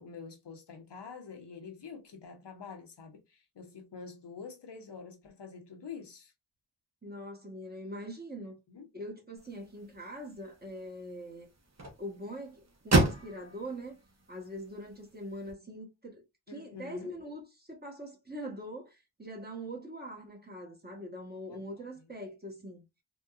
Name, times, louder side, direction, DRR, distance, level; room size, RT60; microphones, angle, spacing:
voice 1, 0.0-6.3 8.7-8.9 16.5-17.1 21.5-21.6, left 5 dB, 70° left, 0.8 m, -46 dB
voice 2, 7.0-8.6 8.9-11.5 12.0-14.0 14.3-22.8, equal, 20° right, 1.1 m, -43 dB
sound 1, 9.4-15.5, right 2 dB, 35° right, 0.8 m, -34 dB
3.6 x 2.2 x 2.3 m
wide cardioid pair, 75°, 44 cm